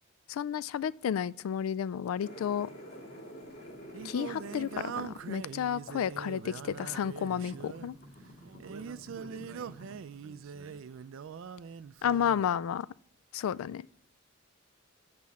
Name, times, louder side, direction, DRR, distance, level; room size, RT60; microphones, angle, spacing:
voice 1, 0.3-2.7 4.0-8.0 12.0-12.9 13.3-13.9, left 8 dB, 80° left, 0.3 m, -32 dB
sound 1, 2.2-10.2, equal, 50° left, 2.0 m, -50 dB
Singing, 3.4-12.5, right 7 dB, 65° right, 0.3 m, -43 dB
voice 2, 8.4-9.8 10.2-10.8, right 3 dB, 85° right, 0.7 m, -52 dB
8.5 x 5.2 x 7.0 m
head